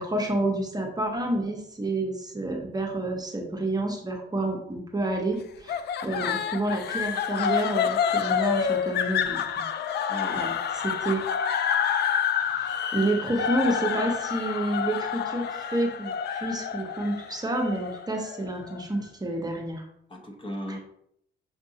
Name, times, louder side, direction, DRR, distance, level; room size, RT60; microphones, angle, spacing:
voice 1, 0.0-9.6 10.3-10.5 10.8-11.2 12.3-19.9, right 1 dB, 20° right, 1 dB, 0.8 m, -29 dB
sound 1, 5.7-18.8, left 8 dB, 55° left, 0.4 m, -28 dB
voice 2, 10.1-10.4 20.1-20.8, equal, 25° left, 1 dB, 0.9 m, -36 dB
6.3 x 2.5 x 2.7 m, 0.72 s
cardioid pair, 90°, 20 cm